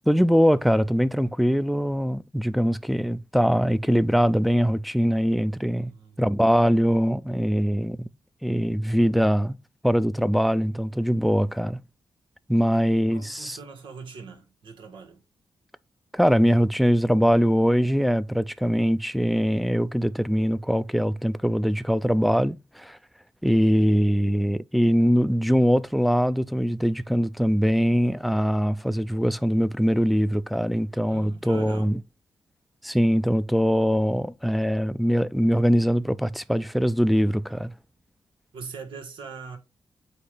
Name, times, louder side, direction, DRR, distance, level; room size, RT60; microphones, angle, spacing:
voice 1, 0.1-5.9 6.2-8.1 8.4-9.6 9.8-11.8 12.5-13.6 16.1-23.0 23.4-32.0 32.8-37.7, equal, ahead, 0.5 m, -22 dB
voice 2, 5.8-6.3 13.1-15.2 31.1-32.0 38.5-39.6, right 5 dB, 85° right, 1.8 m, -41 dB
8.3 x 2.9 x 5.1 m
cardioid pair, 80°, 8 cm